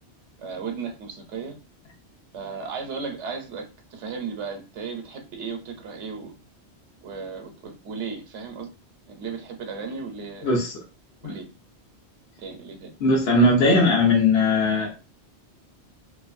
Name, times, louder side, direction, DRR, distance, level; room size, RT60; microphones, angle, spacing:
voice 1, 0.4-1.6 2.3-6.3 7.0-8.7 9.1-10.5 11.2-11.5 12.4-12.9 13.4-13.5, right 5 dB, 85° right, 0.9 m, -35 dB
voice 2, 10.4-10.8 11.2-11.4 13.0-14.9, left 2 dB, 65° left, 0.9 m, -19 dB
2.5 x 2.2 x 2.4 m
omnidirectional pair, 1.2 m